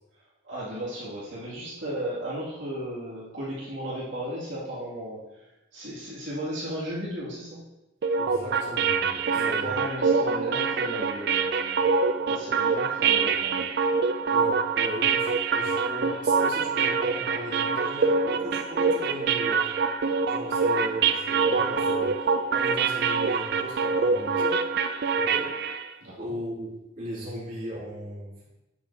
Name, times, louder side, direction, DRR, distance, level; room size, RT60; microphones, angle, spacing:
voice 1, 0.4-7.7 9.2-12.0 12.3-13.7 26.0-26.3, right 1 dB, 75° right, -9 dB, 2.4 m, -35 dB
sound 1, 8.0-25.9, right 5 dB, 55° right, 0.4 m, -25 dB
voice 2, 8.2-9.8 14.3-19.7 20.3-22.1 22.5-24.6 25.1-25.6 26.2-28.3, equal, 40° right, -9 dB, 2.9 m, -37 dB
8.5 x 6.6 x 2.8 m, 0.97 s
head